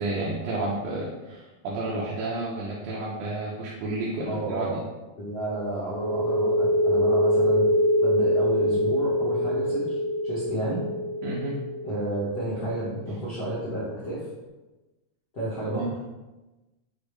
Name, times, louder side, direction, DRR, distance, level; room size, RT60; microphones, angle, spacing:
voice 1, 0.0-4.8 11.2-11.6 15.7-15.9, right 2 dB, 80° right, -4 dB, 2.1 m, -31 dB
voice 2, 4.3-4.8 5.2-7.7 8.0-10.0 10.2-10.8 11.8-14.3 15.3-15.9, right 1 dB, 85° left, -8 dB, 0.9 m, -31 dB
sound 1, 5.9-13.3, equal, 65° right, 1.5 m, -24 dB
6.4 x 2.5 x 3.2 m, 1.1 s
omnidirectional pair, 3.4 m